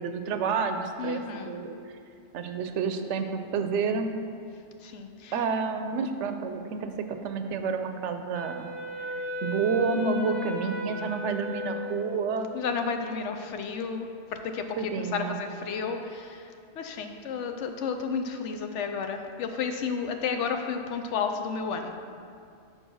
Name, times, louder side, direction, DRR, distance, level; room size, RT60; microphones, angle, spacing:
voice 1, 0.0-1.2 1.5-1.7 2.3-4.1 5.3-8.7 9.1-12.5 14.8-15.4, right 5 dB, 75° right, 7 dB, 0.9 m, -29 dB
voice 2, 1.0-1.5 4.8-5.3 12.5-21.9, left 5 dB, 75° left, 6 dB, 0.9 m, -32 dB
Wind instrument woodwind instrument, 8.3-12.6, left 2 dB, 25° right, 0.8 m, -35 dB
6.5 x 4.7 x 6.2 m, 2.4 s
omnidirectional pair, 1.2 m